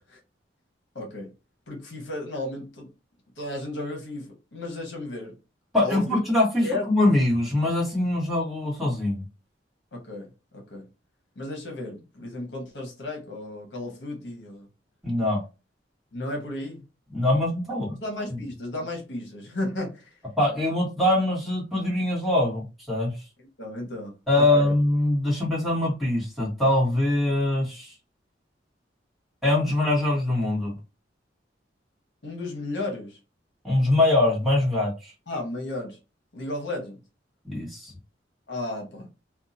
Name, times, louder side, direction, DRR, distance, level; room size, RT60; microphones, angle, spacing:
voice 1, 0.9-1.3 1.7-2.9 3.4-5.3 5.8-6.2 6.6-6.9 9.9-10.9 11.4-14.7 16.1-16.8 18.0-20.1 23.6-24.7 32.2-33.2 35.3-36.0 36.3-37.0 38.5-39.1, left 2 dB, 70° left, 1.0 m, -34 dB
voice 2, 5.7-9.2 15.0-15.4 17.1-18.0 20.4-23.1 24.3-27.9 29.4-30.7 33.6-35.1 37.4-37.9, left 1 dB, ahead, 1.3 m, -23 dB
2.7 x 2.2 x 2.6 m
head